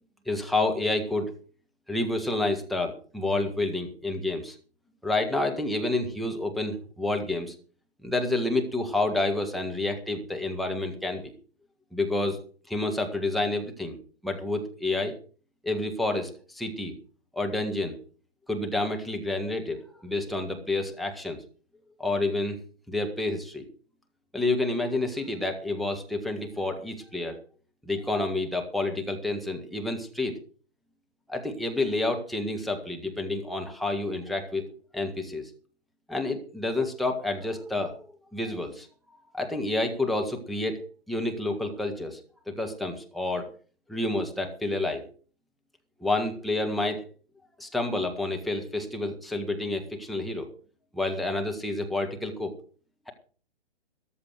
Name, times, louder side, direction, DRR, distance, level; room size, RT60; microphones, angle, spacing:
voice 1, 0.2-1.4 1.9-4.6 5.0-7.5 8.0-11.3 11.9-12.4 12.7-13.9 14.2-15.1 15.6-16.9 17.3-18.0 18.5-21.4 22.0-22.6 22.9-23.6 24.3-27.4 27.8-30.4 31.3-34.7 34.9-35.5 36.1-38.9 39.3-42.2 42.5-43.5 43.9-45.0 46.0-47.0 47.6-50.5 50.9-52.5, left 2 dB, ahead, 3 dB, 1.6 m, -29 dB
14.0 x 12.0 x 4.7 m, 0.40 s
figure-of-eight pair, 125°, 31 cm